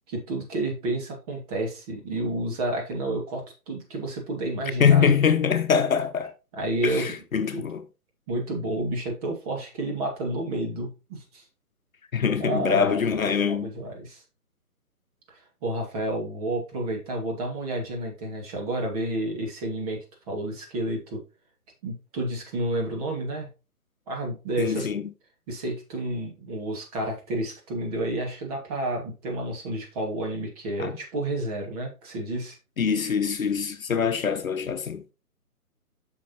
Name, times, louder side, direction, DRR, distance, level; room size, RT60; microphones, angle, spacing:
voice 1, 0.1-5.1 6.5-7.1 7.5-7.6 8.3-11.4 12.4-14.2 15.6-20.0 20.3-21.2 21.8-23.5 24.1-24.9 25.5-32.6, right 1 dB, 25° right, 2.5 m, -30 dB
voice 2, 4.8-6.3 6.8-7.8 12.1-13.7 24.6-25.1 30.8-31.0 32.8-35.0, left 7 dB, 60° left, 1.0 m, -23 dB
8.3 x 6.7 x 3.1 m
figure-of-eight pair, 145°, 45 cm